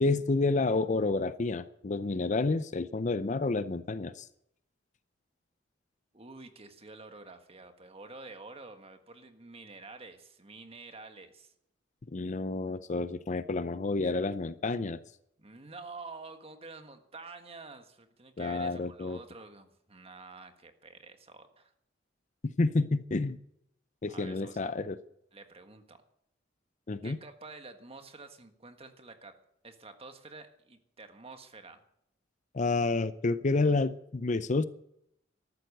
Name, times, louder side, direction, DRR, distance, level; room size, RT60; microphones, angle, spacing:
voice 1, 0.0-4.3 12.1-15.0 18.4-19.2 22.4-23.4 24.0-25.0 26.9-27.2 32.5-34.6, left 3 dB, 40° left, 14 dB, 0.6 m, -29 dB
voice 2, 6.1-11.5 15.4-21.7 24.1-24.7 25.3-26.0 27.0-29.4 29.6-31.8, right 3 dB, 30° right, 7 dB, 1.5 m, -49 dB
13.5 x 12.0 x 6.6 m, 0.75 s
head